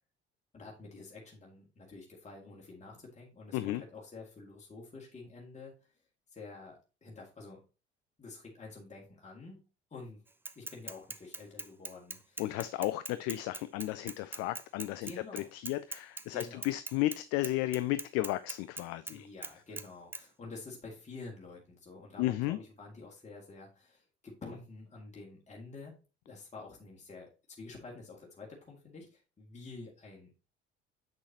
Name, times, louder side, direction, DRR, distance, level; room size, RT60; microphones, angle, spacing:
voice 1, 0.5-5.7 6.3-7.6 8.2-9.6 9.9-10.2 10.6-12.5 15.0-15.5 16.3-16.7 19.1-25.9 26.3-27.3 27.6-30.3, left 3 dB, 20° left, 2.3 m, -49 dB
Bicycle / Mechanisms, 10.5-17.2 17.4-19.2 19.4-19.9 20.1-20.2, right 2 dB, 5° right, 0.5 m, -41 dB
voice 2, 12.4-19.3 22.2-22.6, left 16 dB, 50° left, 0.5 m, -34 dB
7.6 x 6.2 x 2.9 m
figure-of-eight pair, 55°, 32 cm